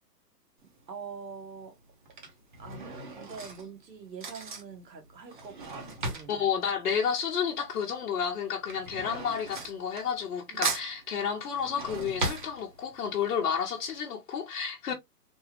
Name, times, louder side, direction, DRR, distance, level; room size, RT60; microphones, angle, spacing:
Drawer open or close / Cutlery silverware, 0.6-1.0 1.8-7.7 8.0-10.4 10.6-13.1 13.6-13.7 13.9-14.0, right 3 dB, 30° right, 0.6 m, -37 dB
voice 1, 0.6-1.7 2.6-6.4 10.5-10.6 14.9-15.0, right 5 dB, 85° right, 1.3 m, -45 dB
voice 2, 6.3-14.9, left 7 dB, 60° left, 0.8 m, -31 dB
3.5 x 2.1 x 2.7 m
hypercardioid pair, 155°, 49 cm